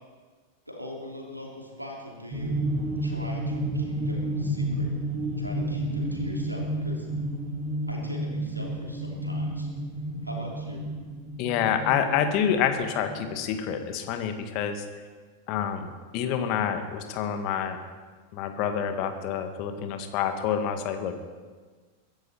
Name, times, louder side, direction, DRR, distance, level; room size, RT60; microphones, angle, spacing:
voice 1, 0.7-2.6 3.0-4.9 5.4-7.1 7.9-9.7 10.2-10.9, equal, 90° right, -1 dB, 3.0 m, -40 dB
sound 1, 2.3-13.4, right 1 dB, 25° right, 3.7 m, -31 dB
voice 2, 11.4-14.8 15.5-17.8 18.3-21.1, left 8 dB, 40° left, 7 dB, 1.6 m, -27 dB
22.5 x 10.5 x 4.3 m, 1.4 s
figure-of-eight pair, 90°, 0 cm